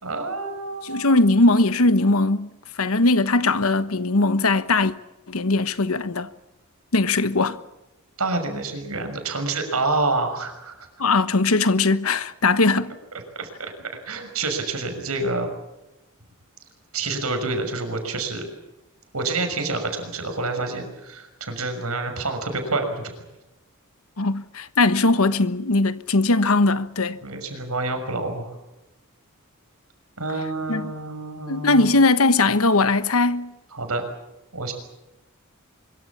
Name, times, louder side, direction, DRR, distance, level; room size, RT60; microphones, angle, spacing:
voice 1, 0.0-1.2 8.2-10.9 13.3-15.5 16.9-18.5 19.1-23.1 27.2-28.5 30.2-31.9 33.7-34.0 34.5-34.7, right 3 dB, 80° right, 6.2 m, -28 dB
voice 2, 0.8-2.5 2.8-4.9 5.3-6.3 6.9-7.6 11.0-12.9 24.2-27.2 30.7-30.9 31.5-33.5, left 2 dB, 75° left, 1.3 m, -20 dB
25.0 x 23.5 x 7.3 m
head